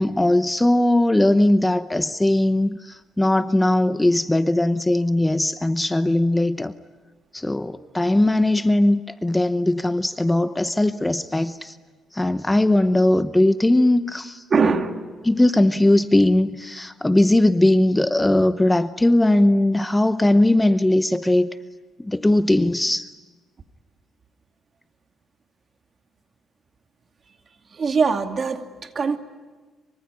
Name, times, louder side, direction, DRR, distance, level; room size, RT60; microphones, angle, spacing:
voice 1, 0.0-6.7 7.3-11.8 12.1-14.4 15.2-21.5 22.0-23.0, left 1 dB, 10° left, 0.9 m, -19 dB
voice 2, 14.5-15.0 27.7-29.2, right 5 dB, 45° right, 2.4 m, -22 dB
24.5 x 24.5 x 9.8 m
cardioid pair, 90°, 0 cm